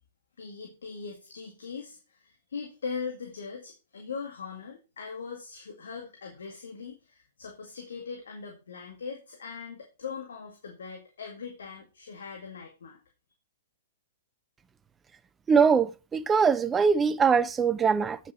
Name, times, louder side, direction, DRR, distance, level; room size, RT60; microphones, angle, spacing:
voice 1, 0.4-13.0, left 5 dB, 75° left, 2.0 m, -40 dB
voice 2, 15.5-18.2, right 6 dB, 15° right, 0.4 m, -22 dB
8.6 x 6.9 x 4.3 m
hypercardioid pair, 115°, 0 cm